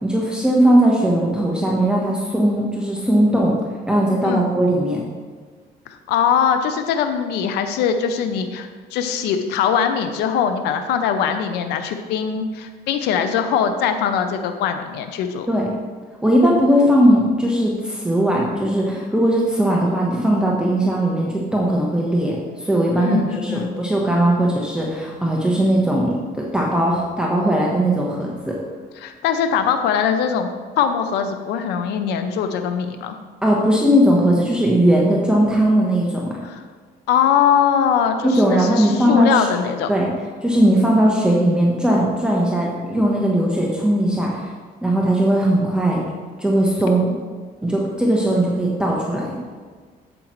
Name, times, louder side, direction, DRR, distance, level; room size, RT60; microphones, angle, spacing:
voice 1, 0.0-3.5 3.9-5.0 15.5-15.7 16.2-28.5 33.4-36.4 38.2-39.5 39.9-40.1 40.4-44.5 44.8-46.0 46.4-47.1 47.6-49.4, right 1 dB, 5° right, -3 dB, 1.1 m, -18 dB
voice 2, 5.9-15.5 23.0-23.7 29.0-30.5 30.8-33.2 36.4-36.6 37.1-39.9, left 7 dB, 85° left, 7 dB, 0.7 m, -21 dB
8.7 x 7.6 x 3.1 m, 1.5 s
cardioid pair, 110°, 17 cm